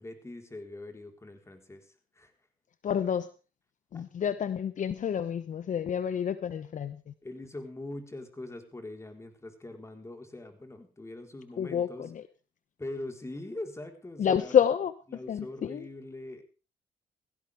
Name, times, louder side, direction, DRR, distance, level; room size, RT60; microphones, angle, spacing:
voice 1, 0.0-2.3 3.9-4.1 7.2-12.1 12.8-14.5 15.1-16.4, left 2 dB, 15° left, 5 dB, 4.2 m, -42 dB
voice 2, 2.8-3.3 3.9-7.1 11.6-12.2 14.2-14.9 15.3-15.8, left 8 dB, 55° left, 13 dB, 0.9 m, -28 dB
17.5 x 15.5 x 3.5 m, 0.34 s
cardioid pair, 85°, 16 cm